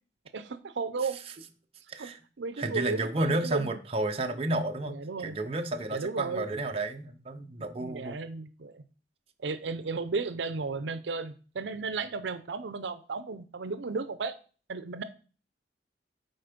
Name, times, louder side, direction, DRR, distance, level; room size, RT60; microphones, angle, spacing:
voice 1, 0.3-1.2 2.0-2.1 2.4-3.8 4.8-5.4 5.9-6.5 7.8-8.8 9.4-14.3 14.7-15.0, right 4 dB, 75° right, 13 dB, 0.6 m, -34 dB
voice 2, 2.6-4.9 5.2-8.2, right 2 dB, 30° right, 5 dB, 0.7 m, -31 dB
7.9 x 4.4 x 5.1 m, 0.38 s
head